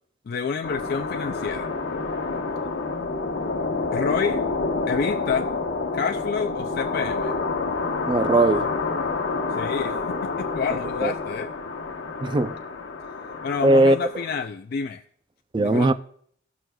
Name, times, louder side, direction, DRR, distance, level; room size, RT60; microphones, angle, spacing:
voice 1, 0.3-1.7 3.9-4.4 4.9-5.5 5.9-7.3 9.5-11.5 13.4-15.0 15.6-15.9, left 6 dB, 55° left, 0.4 m, -28 dB
sound 1, 0.6-14.5, left 3 dB, 70° left, 1.2 m, -28 dB
voice 2, 8.1-8.7 11.0-11.1 12.2-12.6 13.6-14.0 15.5-15.9, right 2 dB, 25° right, 0.4 m, -19 dB
16.0 x 6.2 x 2.2 m
head